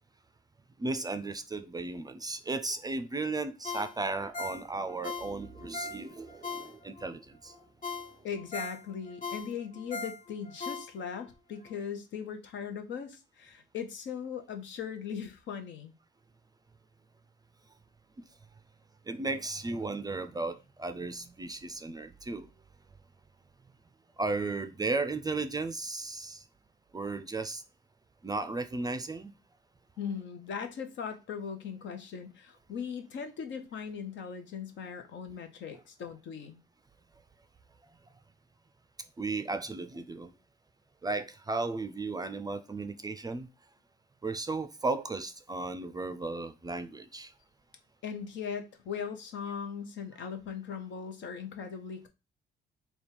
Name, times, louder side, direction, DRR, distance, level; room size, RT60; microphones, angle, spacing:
voice 1, 0.8-7.6 19.1-22.5 24.2-26.4 26.9-27.6 28.2-29.3 39.2-40.3 41.0-43.5 44.2-47.3, right 3 dB, 20° right, 0.4 m, -35 dB
Ringtone, 3.6-7.1 7.5-7.6 7.8-11.3 11.7-11.8, left 4 dB, 40° left, 0.7 m, -40 dB
voice 2, 8.2-15.9 30.0-36.6 48.0-52.1, left 7 dB, 70° left, 0.9 m, -39 dB
3.5 x 2.3 x 4.4 m
cardioid pair, 90°, 20 cm